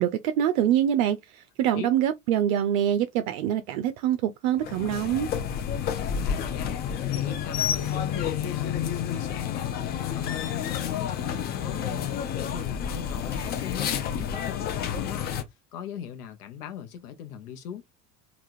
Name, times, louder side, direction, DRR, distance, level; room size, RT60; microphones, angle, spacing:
voice 1, 0.0-5.3, right 10 dB, 60° right, 0.5 m, -25 dB
sound 1, 4.6-15.4, left 9 dB, 25° left, 0.3 m, -30 dB
voice 2, 6.0-15.3 15.7-17.8, left 9 dB, 70° left, 0.7 m, -39 dB
3.4 x 2.3 x 2.5 m
figure-of-eight pair, 70°, 47 cm